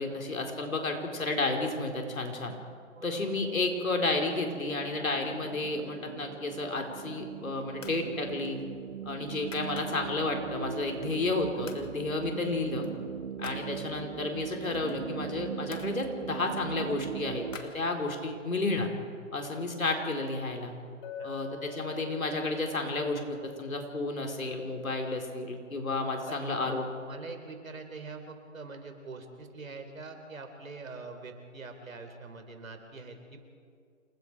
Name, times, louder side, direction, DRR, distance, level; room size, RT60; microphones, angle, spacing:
voice 1, 0.0-2.5 3.0-8.6 9.0-12.9 13.4-17.5 17.7-18.9 19.3-20.7 21.2-26.9, left 2 dB, 85° left, 2 dB, 4.5 m, -32 dB
sound 1, 4.2-17.6, right 8 dB, 40° right, 1.2 m, -40 dB
sound 2, 6.9-7.3 7.8-8.1 8.4-10.2 10.7-11.4 11.7-11.9 12.2-13.7 14.4-15.9 16.5-18.4, left 5 dB, 70° left, 2.7 m, -50 dB
Chink clink, 21.0-25.0, left 4 dB, 20° left, 1.3 m, -46 dB
voice 2, 26.2-33.4, right 3 dB, 80° right, 6 dB, 4.1 m, -44 dB
28.5 x 21.0 x 4.9 m, 2.3 s
hypercardioid pair, 150°, 40 cm